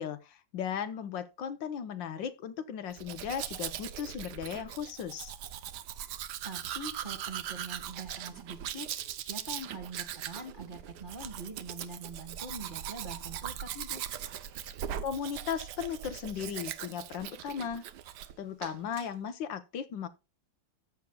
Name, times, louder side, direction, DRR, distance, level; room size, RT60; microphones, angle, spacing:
voice 1, 0.0-5.3 15.0-17.8 18.4-20.1, left 8 dB, 75° left, 1.6 m, -36 dB
Domestic sounds home sounds, 2.9-18.3 18.6-19.1, right 10 dB, 65° right, 1.2 m, -40 dB
voice 2, 6.4-8.9 9.2-14.0, right 2 dB, 25° right, 1.8 m, -43 dB
14.0 x 8.1 x 2.3 m
omnidirectional pair, 2.1 m